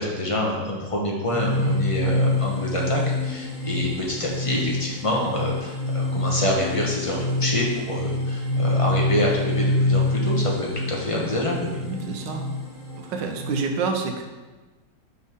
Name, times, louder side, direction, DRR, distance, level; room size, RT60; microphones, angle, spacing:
voice 1, 0.0-11.8, left 1 dB, 30° left, -3 dB, 0.6 m, -27 dB
sound 1, 1.3-13.6, left 2 dB, 55° left, 2.6 m, -26 dB
voice 2, 1.6-2.4 11.8-12.5 13.0-14.2, right 5 dB, 80° right, 4 dB, 1.4 m, -29 dB
6.0 x 4.6 x 3.5 m, 1.2 s
omnidirectional pair, 2.0 m